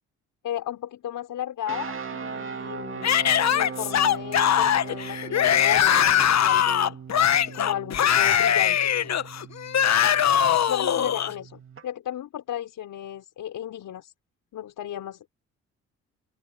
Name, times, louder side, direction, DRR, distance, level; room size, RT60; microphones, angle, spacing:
voice 1, 0.4-3.1 3.5-6.9 7.4-8.9 10.7-14.1 14.5-15.3, left 11 dB, 70° left, 5.1 m, -34 dB
sound 1, 1.7-11.8, right 6 dB, 40° right, 2.4 m, -39 dB
Yell / Screaming, 3.0-11.3, left 9 dB, 55° left, 1.4 m, -21 dB
open air
supercardioid pair, 60°, 32 cm